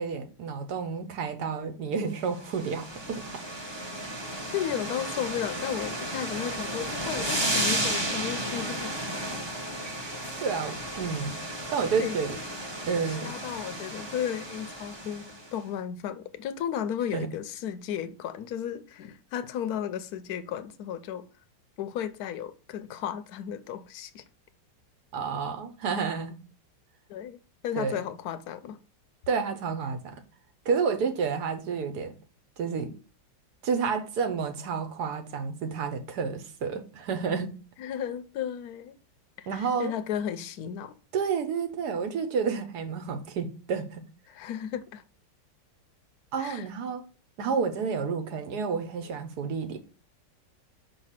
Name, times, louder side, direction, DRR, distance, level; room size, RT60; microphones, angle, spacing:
voice 1, 0.0-3.4 10.4-11.4 11.7-12.4 12.9-13.4 17.1-17.3 25.1-26.4 27.7-28.1 29.3-30.2 30.6-32.1 32.6-32.9 33.6-37.6 39.5-39.9 41.1-44.0 46.3-47.0 47.4-49.8, right 5 dB, 70° right, 1.3 m, -30 dB
sound 1, 2.3-15.5, right 1 dB, 20° right, 0.7 m, -33 dB
voice 2, 4.5-9.2 12.0-12.4 13.1-15.2 15.5-21.2 21.8-24.2 27.1-27.4 27.6-28.8 37.8-39.0 39.4-41.0 44.3-45.0 46.4-46.7, left 9 dB, 70° left, 1.0 m, -34 dB
5.5 x 3.3 x 5.7 m
omnidirectional pair, 1.9 m